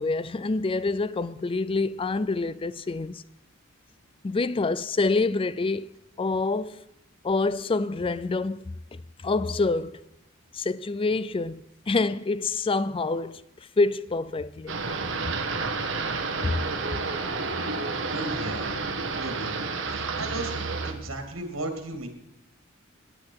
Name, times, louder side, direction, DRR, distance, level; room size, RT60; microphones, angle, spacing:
voice 1, 0.0-3.2 4.2-5.9 6.2-6.8 7.2-8.8 9.2-10.0 10.5-11.6 11.9-13.4 13.8-14.8 15.9-16.6, left 3 dB, 25° left, 0.4 m, -27 dB
sound 1, 14.7-20.9, right 4 dB, 65° right, 1.6 m, -30 dB
voice 2, 18.1-19.6 19.9-22.1, right 2 dB, 85° right, 2.9 m, -36 dB
18.5 x 10.5 x 4.8 m
head